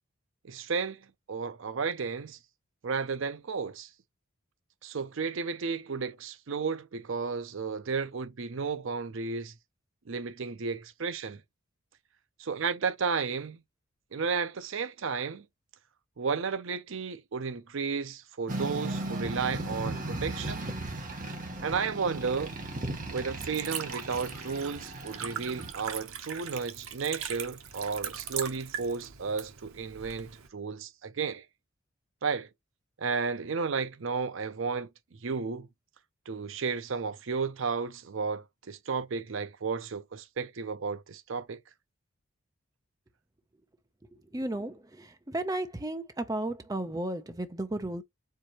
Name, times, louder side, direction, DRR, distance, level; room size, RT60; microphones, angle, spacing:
voice 1, 0.4-2.4 2.8-3.9 4.8-9.5 10.1-11.4 12.4-13.6 14.1-15.5 16.2-20.7 21.6-22.5 23.1-31.5 32.2-32.5 33.0-34.9 35.2-35.7 36.3-41.6, right 5 dB, 60° right, 0.5 m, -33 dB
sound 1, 18.5-25.7, right 2 dB, 40° right, 1.1 m, -36 dB
Liquid, 21.9-30.5, right 8 dB, 85° right, 1.0 m, -41 dB
voice 2, 44.3-48.0, right 1 dB, 15° right, 0.5 m, -34 dB
4.6 x 3.7 x 2.9 m
head